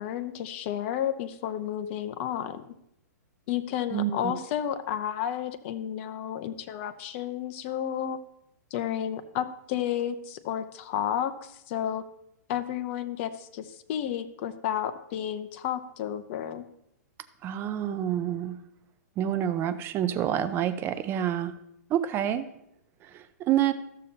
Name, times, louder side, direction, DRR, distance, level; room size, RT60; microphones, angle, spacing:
voice 1, 0.0-2.7 3.5-8.2 8.7-12.0 12.5-16.7, left 10 dB, 40° left, 10 dB, 0.7 m, -32 dB
voice 2, 3.9-4.4 17.4-18.6 19.2-21.5 21.9-22.5 23.0-23.7, right 10 dB, 25° right, 14 dB, 0.5 m, -28 dB
13.5 x 6.6 x 2.8 m, 0.79 s
hypercardioid pair, 140°, 9 cm